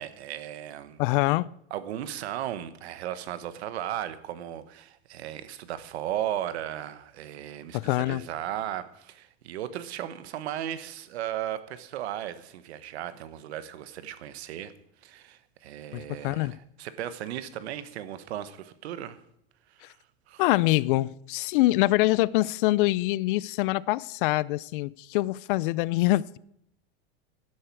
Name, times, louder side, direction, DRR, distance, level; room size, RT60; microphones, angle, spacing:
voice 1, 0.0-1.0 1.7-14.7 15.0-19.2 19.7-20.0 20.3-20.4, right 11 dB, 85° right, 1.3 m, -36 dB
voice 2, 1.0-1.5 7.7-8.2 15.9-16.6 20.4-26.4, left 19 dB, 55° left, 0.5 m, -24 dB
13.0 x 11.5 x 4.7 m
supercardioid pair, 155°, 32 cm